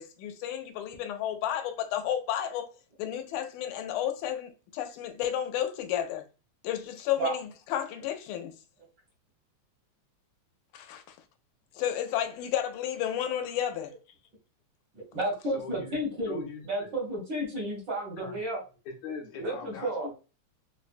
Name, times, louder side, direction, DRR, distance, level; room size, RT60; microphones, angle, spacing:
voice 1, 0.0-2.7 3.0-6.2 6.6-8.6 10.7-11.2 11.8-13.9, left 10 dB, 90° left, 2.1 m, -32 dB
voice 2, 14.9-18.6 19.4-20.1, right 1 dB, 60° right, 1.2 m, -32 dB
voice 3, 15.5-16.0 16.3-16.9 18.2-18.4 18.8-20.1, left 5 dB, 70° left, 1.8 m, -41 dB
4.9 x 2.1 x 2.5 m
omnidirectional pair, 3.4 m